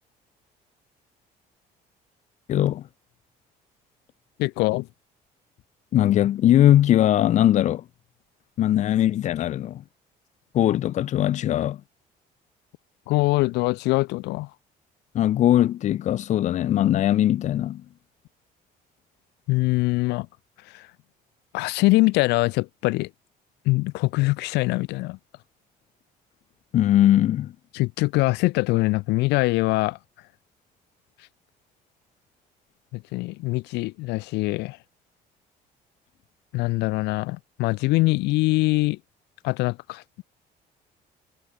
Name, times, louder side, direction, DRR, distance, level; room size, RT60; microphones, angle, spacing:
voice 1, 2.5-2.9 5.9-7.8 8.6-9.8 10.5-11.8 15.1-17.8 26.7-27.5, left 12 dB, 45° left, 0.4 m, -20 dB
voice 2, 4.4-4.9 13.1-14.5 19.5-20.3 20.7-20.9 21.5-23.1 23.6-25.2 27.7-30.0 32.9-34.8 36.5-39.0 39.4-40.0, left 22 dB, 90° left, 0.6 m, -23 dB
cardioid pair, 110°, 17 cm